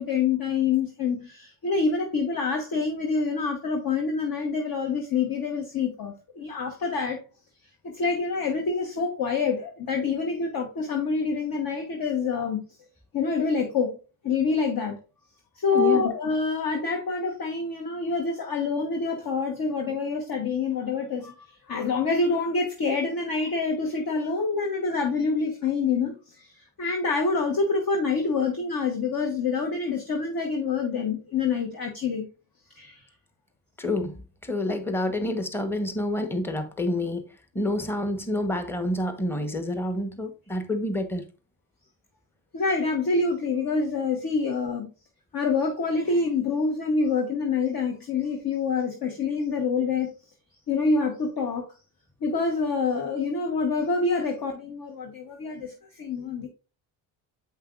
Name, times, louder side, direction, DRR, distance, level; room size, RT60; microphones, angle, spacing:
voice 1, 0.0-7.2 7.8-12.6 13.1-14.0 14.2-14.9 15.5-32.3 32.7-33.0 42.5-44.9 45.3-50.1 50.7-51.6 52.2-56.5, left 4 dB, 45° left, 1.3 m, -26 dB
voice 2, 15.7-16.0 33.8-37.3 37.5-41.2, left 1 dB, 5° left, 1.1 m, -28 dB
7.8 x 5.5 x 2.5 m
supercardioid pair, 65°, 49 cm